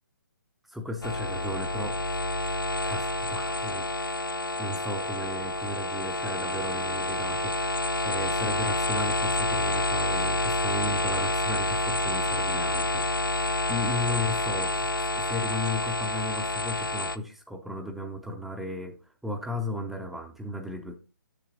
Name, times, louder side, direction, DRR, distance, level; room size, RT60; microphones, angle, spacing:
voice 1, 0.7-2.0 2.9-3.9 4.6-14.8 15.1-20.9, left 1 dB, ahead, 4 dB, 0.4 m, -35 dB
sound 1, 1.0-17.2, left 2 dB, 85° left, 0.5 m, -28 dB
7.0 x 7.0 x 3.8 m, 0.33 s
figure-of-eight pair, 135°, 11 cm